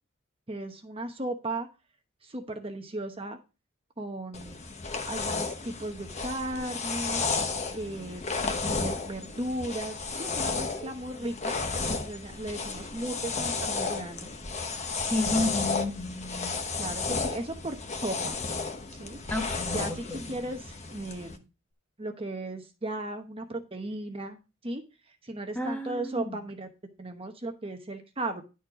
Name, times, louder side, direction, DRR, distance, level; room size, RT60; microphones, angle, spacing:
voice 1, 0.5-1.7 2.2-3.4 4.0-4.6 5.1-11.6 12.0-14.3 15.2-15.4 16.8-18.4 19.0-21.4 22.0-24.4 24.6-24.8 25.2-26.7 27.0-28.4, right 1 dB, 30° right, 1.0 m, -36 dB
sound 1, 4.3-21.4, left 4 dB, 35° left, 0.9 m, -33 dB
voice 2, 15.1-16.6 19.3-20.4 25.5-26.4, left 2 dB, 5° left, 1.2 m, -32 dB
11.0 x 4.4 x 4.8 m
head